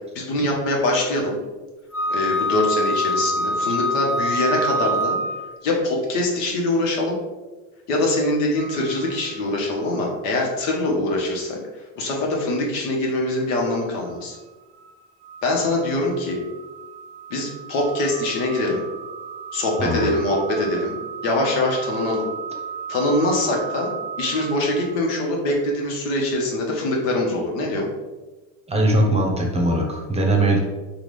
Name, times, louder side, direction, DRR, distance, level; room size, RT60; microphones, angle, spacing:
voice 1, 0.1-1.4 2.1-5.2 5.6-7.2 7.9-14.4 15.4-16.4 17.3-18.8 19.5-21.0 21.2-22.2 22.9-23.9 24.2-27.9, left 1 dB, 80° left, -1 dB, 1.0 m, -23 dB
Wind instrument woodwind instrument, 1.9-5.5, equal, 40° left, 1.4 m, -24 dB
sound 1, 8.6-10.5 10.9-11.0 13.6-25.5, right 7 dB, 45° right, 0.4 m, -37 dB
voice 2, 19.8-20.1 28.7-30.6, right 1 dB, 15° right, 0 dB, 0.7 m, -20 dB
3.7 x 2.4 x 3.2 m, 1.2 s
supercardioid pair, 95°, 37 cm